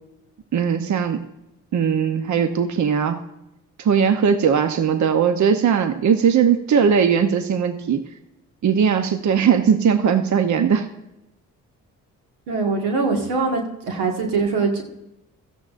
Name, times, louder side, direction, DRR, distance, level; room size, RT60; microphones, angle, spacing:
voice 1, 0.5-1.3 1.7-3.2 3.8-8.0 8.6-10.9, right 7 dB, 50° right, 9 dB, 0.9 m, -19 dB
voice 2, 12.5-14.8, right 4 dB, 90° right, 1 dB, 1.8 m, -22 dB
16.0 x 13.5 x 2.5 m, 0.90 s
supercardioid pair, 50°, 37 cm